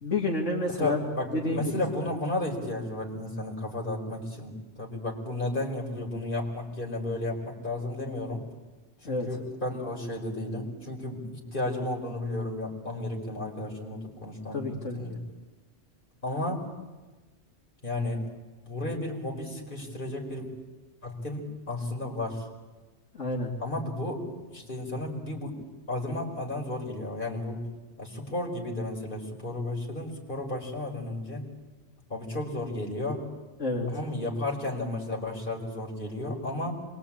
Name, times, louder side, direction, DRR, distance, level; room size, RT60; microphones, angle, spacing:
voice 1, 0.0-1.0 1.3-1.8 9.0-9.3 14.5-15.0 23.1-23.5 33.6-33.9, left 2 dB, 75° left, -2 dB, 3.1 m, -29 dB
voice 2, 0.7-8.4 9.0-15.2 16.2-16.7 17.8-18.2 18.6-20.5 21.0-22.5 23.6-24.2 24.5-27.6 28.0-31.4 32.1-33.2 33.9-36.7, left 1 dB, 45° left, 0 dB, 5.0 m, -33 dB
26.5 x 23.0 x 8.8 m, 1.2 s
omnidirectional pair, 1.3 m